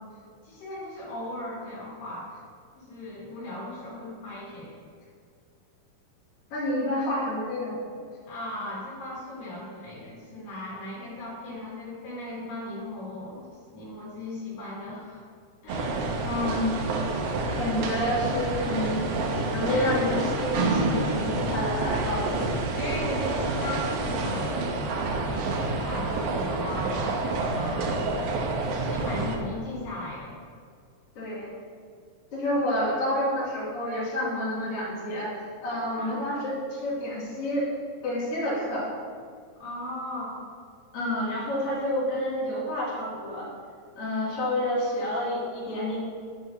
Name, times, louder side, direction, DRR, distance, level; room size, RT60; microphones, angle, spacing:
voice 1, 0.4-2.3 2.8-4.8 8.3-13.4 13.7-15.2 15.6-16.0 19.6-19.9 22.8-28.1 28.7-30.3 35.9-36.2 39.6-40.4, left 1 dB, 75° left, -7 dB, 3.7 m, -37 dB
voice 2, 6.5-7.9 16.2-16.8 17.5-19.0 19.5-22.4 31.1-31.5 32.3-37.7 38.0-38.9 40.9-43.5 44.0-46.0, left 1 dB, 45° left, -9 dB, 3.0 m, -29 dB
sound 1, 15.7-29.4, right 3 dB, 80° right, 2.4 m, -28 dB
10.5 x 7.6 x 2.6 m, 2.1 s
omnidirectional pair, 4.0 m